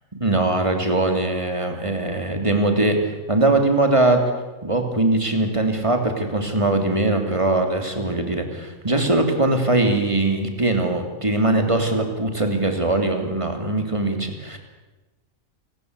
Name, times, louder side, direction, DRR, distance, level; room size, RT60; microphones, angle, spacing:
voice 1, 0.2-3.0 3.3-4.3 4.6-14.6, right 2 dB, 20° right, 5 dB, 3.3 m, -21 dB
28.5 x 20.0 x 8.3 m, 1.1 s
omnidirectional pair, 1.4 m